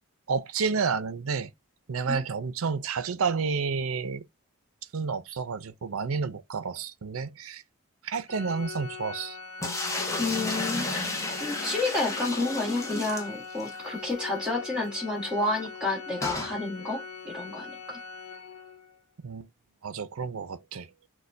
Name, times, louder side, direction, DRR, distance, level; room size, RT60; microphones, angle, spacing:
voice 1, 0.3-1.5 1.9-4.2 4.9-7.6 8.0-9.4 19.2-19.5 19.8-20.9, right 5 dB, 70° right, 0.6 m, -30 dB
Organ, 8.3-19.0, left 5 dB, 75° left, 0.8 m, -41 dB
sound 1, 9.6-13.8 14.1-14.2 14.5-14.6 16.2-16.6, left 2 dB, 15° left, 0.8 m, -32 dB
voice 2, 10.2-11.1 11.4-18.0, left 2 dB, 5° right, 1.6 m, -30 dB
6.2 x 2.2 x 2.6 m
head